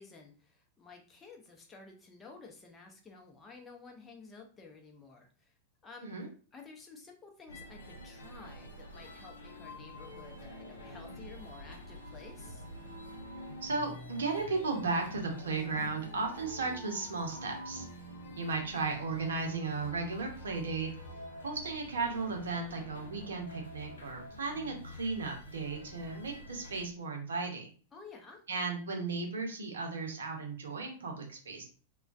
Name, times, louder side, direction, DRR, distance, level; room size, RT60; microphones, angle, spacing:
voice 1, 0.0-5.5 5.8-6.2 6.5-12.7 27.9-28.4, left 4 dB, 20° left, 1 dB, 0.6 m, -52 dB
sound 1, 7.5-26.9, left 1 dB, 75° left, 0.6 m, -47 dB
voice 2, 13.6-17.9 18.4-20.9 21.4-27.7 28.5-31.6, right 4 dB, 70° right, 2 dB, 0.7 m, -35 dB
2.2 x 2.2 x 2.4 m, 0.39 s
figure-of-eight pair, 95°, 0 cm